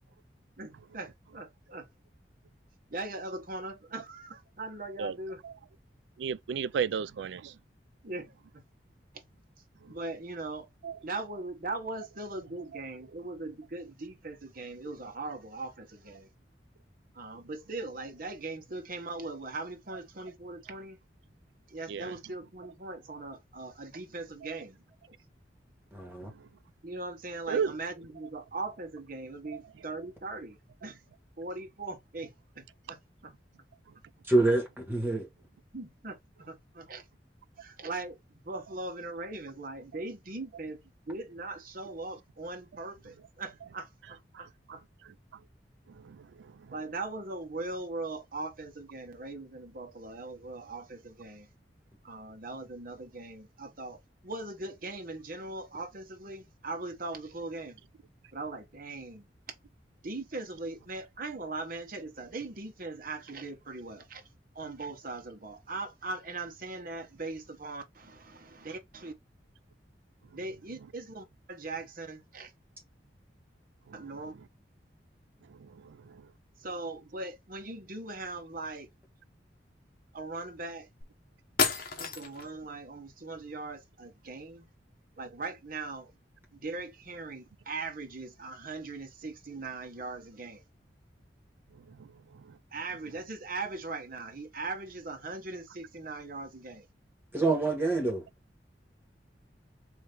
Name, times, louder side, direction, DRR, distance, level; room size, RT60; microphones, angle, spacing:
voice 1, 0.6-1.9 2.9-5.4 8.0-8.6 9.9-10.7 11.0-16.3 17.1-21.0 21.7-24.8 25.1-25.2 26.8-31.0 31.4-33.3 35.7-37.0 37.6-40.8 41.1-44.8 46.7-51.5 52.0-57.8 58.3-59.3 60.0-64.2 64.5-69.1 70.3-72.5 73.9-74.3 76.6-78.9 80.1-80.9 82.0-84.7 85.2-86.1 86.5-90.6 92.7-96.8, right 3 dB, 55° right, 1.1 m, -40 dB
voice 2, 6.2-7.6 10.8-11.0 21.9-22.1 26.2-26.4 27.5-27.8 29.5-29.6 45.0-45.1 45.9-46.7 73.9-74.1 75.5-76.2 91.9-92.6, right 6 dB, 75° right, 0.3 m, -35 dB
voice 3, 25.9-26.3 34.3-35.3 97.3-98.2, right 2 dB, 10° right, 1.7 m, -26 dB
sound 1, 81.0-81.1 81.6-82.5, left 5 dB, 55° left, 1.0 m, -30 dB
3.9 x 2.8 x 3.3 m
head